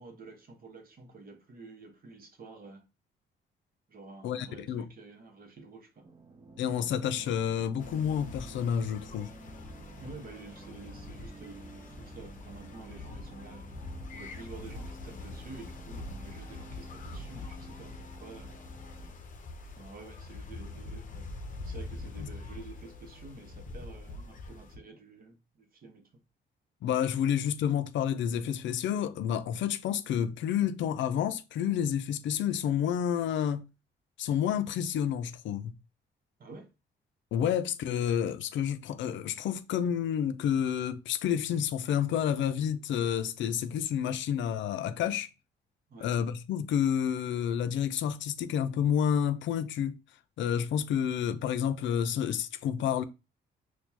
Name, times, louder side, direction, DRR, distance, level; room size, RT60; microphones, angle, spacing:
voice 1, 0.0-2.8 3.9-6.1 10.0-13.7 14.1-18.5 19.8-21.3 21.6-26.1 36.4-36.7 45.9-46.1, right 3 dB, 45° right, 1.0 m, -49 dB
voice 2, 4.2-4.9 6.6-9.3 26.8-33.7 34.2-35.7 37.3-45.3 46.0-50.0 50.4-53.0, left 9 dB, 70° left, 0.4 m, -29 dB
sound 1, 6.0-19.1, right 2 dB, 20° right, 0.4 m, -51 dB
sound 2, 7.8-24.8, left 2 dB, 40° left, 0.7 m, -44 dB
4.4 x 2.2 x 2.8 m
cardioid pair, 90°, 20 cm